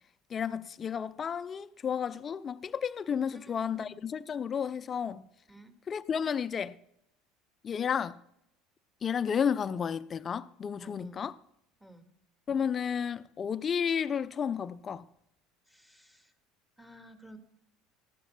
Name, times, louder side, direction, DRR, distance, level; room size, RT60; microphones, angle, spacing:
voice 1, 0.3-5.2 5.9-6.8 7.6-8.2 9.0-11.4 12.5-15.0, left 7 dB, 35° left, 0.5 m, -32 dB
voice 2, 3.3-3.9 5.5-5.7 10.8-11.3 11.8-12.1 15.7-16.3 16.8-17.4, right 1 dB, 10° right, 1.9 m, -53 dB
19.5 x 14.5 x 2.3 m
figure-of-eight pair, 70°, 0 cm